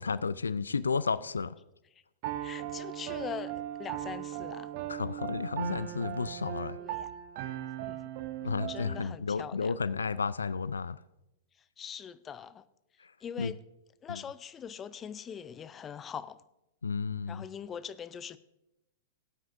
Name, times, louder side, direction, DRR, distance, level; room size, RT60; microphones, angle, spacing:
voice 1, 0.0-1.6 4.9-6.8 8.4-11.0 13.0-13.5 14.1-14.2 16.8-17.4, left 5 dB, 75° left, 0.3 m, -32 dB
Piano, 2.2-9.1, right 12 dB, 45° right, 0.7 m, -38 dB
voice 2, 2.4-4.7 6.8-7.1 7.8-8.0 8.7-9.7 11.6-12.6 13.2-13.6 14.0-16.4 17.3-18.4, left 8 dB, 20° left, 0.5 m, -42 dB
18.0 x 9.2 x 2.6 m
figure-of-eight pair, 100°, 0 cm